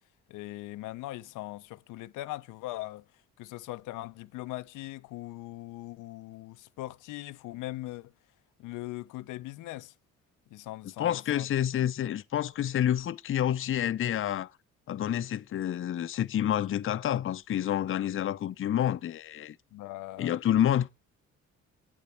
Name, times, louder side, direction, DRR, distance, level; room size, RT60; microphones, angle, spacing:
voice 1, 0.3-3.0 3.4-8.1 8.6-9.9 10.5-11.5 19.7-20.4, left 17 dB, 90° left, 0.6 m, -40 dB
voice 2, 11.0-14.5 14.9-19.6 20.2-20.9, left 11 dB, 45° left, 0.5 m, -28 dB
8.7 x 8.7 x 4.3 m
cardioid pair, 90°, 30 cm